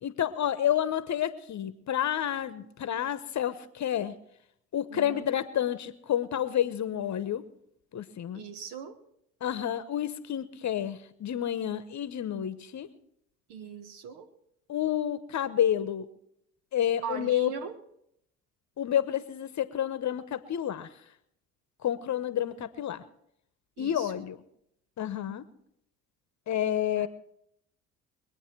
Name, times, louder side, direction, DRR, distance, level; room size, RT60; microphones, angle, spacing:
voice 1, 0.0-4.1 4.7-7.4 7.9-8.4 9.4-12.9 14.7-16.1 16.7-17.5 18.8-20.9 21.8-23.0 23.8-24.4 25.0-25.4 26.5-27.1, left 10 dB, 40° left, 14 dB, 1.0 m, -29 dB
voice 2, 4.9-5.3 8.3-9.0 13.5-14.3 17.0-17.8 23.8-24.2 27.0-27.1, right 7 dB, 70° right, 10 dB, 1.4 m, -40 dB
23.5 x 9.1 x 4.5 m, 0.74 s
hypercardioid pair, 60°, 42 cm